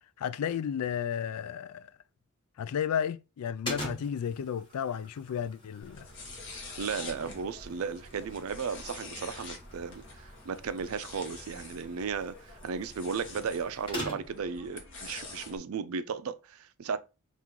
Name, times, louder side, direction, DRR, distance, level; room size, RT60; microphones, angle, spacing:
voice 1, 0.2-1.9 2.6-6.1, left 8 dB, 90° left, 0.4 m, -33 dB
sound 1, 3.6-14.5, equal, 20° left, 1.7 m, -44 dB
sound 2, 5.8-15.6, left 3 dB, 55° left, 1.2 m, -46 dB
voice 2, 6.8-17.0, right 5 dB, 70° right, 0.4 m, -35 dB
3.7 x 2.5 x 4.4 m
head